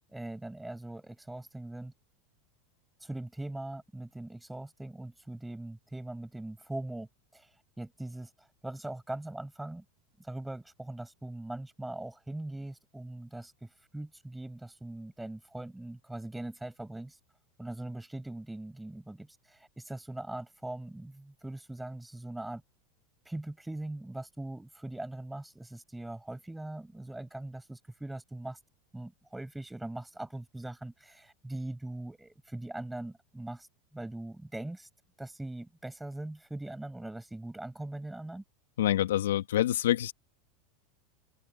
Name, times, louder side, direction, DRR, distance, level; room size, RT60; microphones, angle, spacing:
voice 1, 0.0-1.9 3.0-7.5 7.8-9.8 10.2-17.2 17.6-22.6 23.3-28.6 28.9-33.7 33.9-34.9 35.2-38.4, right 1 dB, 5° right, 7.4 m, -41 dB
voice 2, 38.8-40.1, left 12 dB, 85° left, 2.2 m, -26 dB
open air
hypercardioid pair, 110°, 0 cm